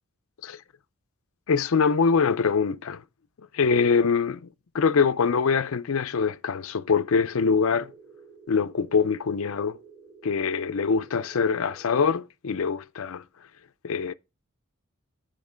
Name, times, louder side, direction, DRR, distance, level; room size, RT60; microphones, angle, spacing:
voice 1, 1.5-3.0 3.5-4.5 4.7-7.9 8.5-9.8 10.2-13.2 13.8-14.1, left 5 dB, 65° left, 0.5 m, -24 dB
sound 1, 7.0-11.9, right 4 dB, 60° right, 4.1 m, -51 dB
9.6 x 5.1 x 5.0 m
head